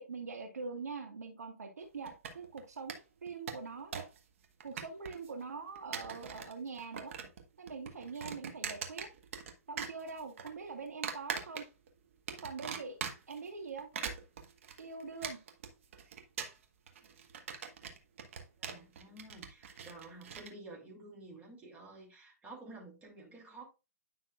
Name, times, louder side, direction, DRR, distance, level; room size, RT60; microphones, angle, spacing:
voice 1, 0.0-4.1 4.6-7.1 7.6-9.1 9.7-11.7 12.3-13.0 13.3-13.9 14.8-15.4, right 4 dB, 75° right, 1.4 m, -43 dB
sound 1, 2.1-2.6 2.9-3.0 3.3-4.2 4.4-5.3 5.8-6.5 6.8-7.4 7.7-9.5 9.8-10.5 11.0-11.9 12.3-13.4 13.8-20.5, right 7 dB, 55° right, 1.3 m, -41 dB
voice 2, 18.6-23.7, right 2 dB, 15° right, 3.0 m, -51 dB
9.7 x 5.6 x 2.4 m
figure-of-eight pair, 125°, 9 cm